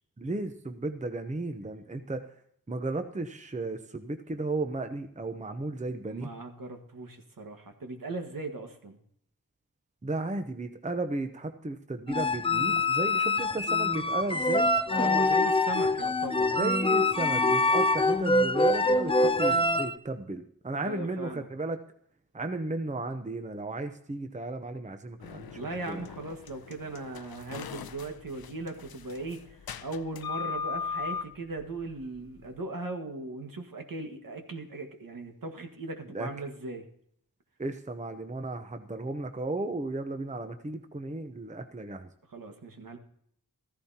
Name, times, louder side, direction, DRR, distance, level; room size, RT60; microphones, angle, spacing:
voice 1, 0.2-2.3 2.7-6.3 10.0-14.7 16.6-21.8 22.3-25.6 25.9-26.0 36.1-36.3 37.6-42.1, right 2 dB, 20° right, 7 dB, 0.8 m, -34 dB
voice 2, 6.1-9.0 14.9-16.5 20.8-21.5 25.5-36.9 42.3-43.0, right 2 dB, 65° right, 4 dB, 1.8 m, -38 dB
sound 1, 12.1-19.9, left 2 dB, 15° left, 0.5 m, -25 dB
sound 2, 25.2-32.6, left 6 dB, 85° left, 0.6 m, -39 dB
14.5 x 14.5 x 2.9 m, 0.67 s
wide cardioid pair, 95°, 36 cm